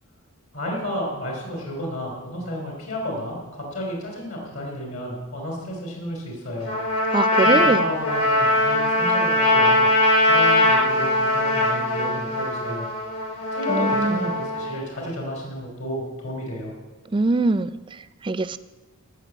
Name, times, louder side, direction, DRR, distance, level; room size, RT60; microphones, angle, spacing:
voice 1, 0.5-6.8 7.4-12.9 13.5-16.7, equal, 70° left, 0 dB, 3.1 m, -32 dB
Trumpet, 6.6-14.7, left 1 dB, 85° left, 5.1 m, -21 dB
voice 2, 7.1-7.8 13.7-14.2 17.1-17.7 18.2-18.6, right 3 dB, 20° right, 14 dB, 0.3 m, -22 dB
13.5 x 6.1 x 8.0 m, 1.2 s
head